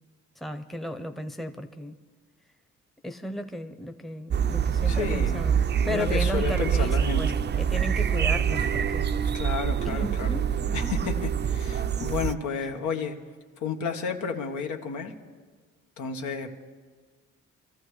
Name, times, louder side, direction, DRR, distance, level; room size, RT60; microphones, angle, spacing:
voice 1, 0.4-1.9 3.0-7.3 7.6-9.1 9.8-10.9, left 1 dB, ahead, 6 dB, 0.8 m, -35 dB
sound 1, 4.3-12.3, right 8 dB, 35° right, 0.5 m, -25 dB
voice 2, 4.8-5.5 5.8-7.2 9.3-10.4 10.7-13.2 13.6-15.1 16.0-16.6, left 6 dB, 75° left, 4 dB, 1.4 m, -31 dB
25.5 x 14.5 x 3.2 m, 1.5 s
cardioid pair, 90°, 30 cm